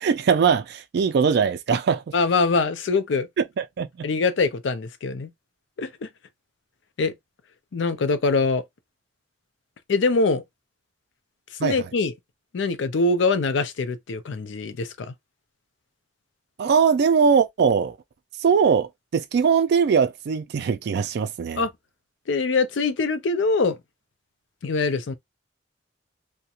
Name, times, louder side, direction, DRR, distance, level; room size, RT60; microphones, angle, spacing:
voice 1, 0.0-2.0 3.4-4.1 11.6-11.8 16.6-18.0 18.4-21.7, right 6 dB, 60° right, 0.3 m, -21 dB
voice 2, 2.1-3.3 4.0-5.3 5.8-5.9 7.0-7.1 7.7-8.6 9.9-10.4 11.6-12.1 12.5-15.1 21.6-21.7 22.3-23.8 24.6-25.1, left 3 dB, 80° left, 0.4 m, -23 dB
2.4 x 2.1 x 2.8 m
head